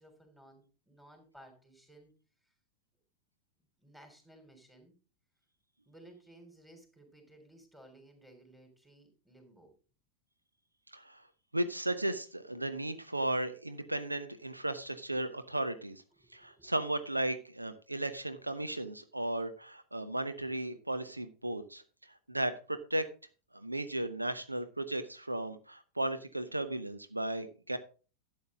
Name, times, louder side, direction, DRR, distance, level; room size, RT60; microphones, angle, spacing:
voice 1, 0.0-2.1 2.4-2.5 3.8-4.9 5.9-9.7 16.2-16.8, right 1 dB, 5° right, 4 dB, 3.5 m, -57 dB
voice 2, 10.9-11.3 11.5-16.0 16.3-23.1 23.5-27.8, right 1 dB, 85° right, 11 dB, 0.9 m, -35 dB
12.0 x 8.5 x 3.8 m, 0.36 s
figure-of-eight pair, 90°, 0 cm